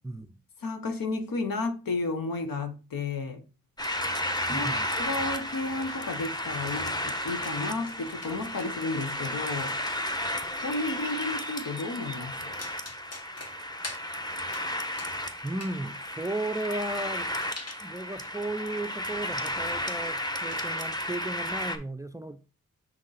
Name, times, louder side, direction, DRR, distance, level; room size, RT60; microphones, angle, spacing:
voice 1, 0.0-0.4 4.5-4.9 15.4-17.3 17.8-22.4, right 2 dB, 10° right, 0.4 m, -35 dB
voice 2, 0.6-3.4 4.5-9.8 10.6-12.5, left 3 dB, 75° left, 1.1 m, -32 dB
sound 1, 3.8-21.8, left 1 dB, 10° left, 1.0 m, -33 dB
sound 2, 4.2-4.7 5.0-6.1 6.4-6.7 7.1-8.7 9.0-11.2 12.3-12.4 12.6-14.1 14.5-14.7 15.0-15.8 16.1-18.3 18.6-18.9 19.2-19.3 19.5-19.7 20.1-20.2 20.5-20.9, left 2 dB, 45° left, 1.4 m, -47 dB
6.3 x 3.7 x 4.0 m
cardioid pair, 40°, 35 cm